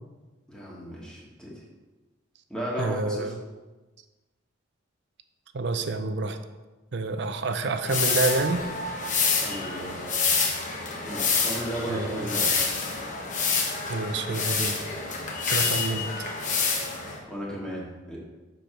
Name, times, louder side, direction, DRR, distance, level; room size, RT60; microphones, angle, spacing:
voice 1, 0.5-1.5 2.5-3.3 9.4-10.0 11.0-12.5 17.3-18.2, equal, 5° left, -5 dB, 1.5 m, -34 dB
voice 2, 2.8-3.4 5.5-6.4 6.9-8.7 11.9-12.4 13.9-14.8 15.5-16.1, right 3 dB, 60° right, 8 dB, 0.6 m, -28 dB
sound 1, 7.8-17.2, left 4 dB, 40° left, 1.0 m, -27 dB
6.7 x 4.6 x 5.1 m, 1.2 s
head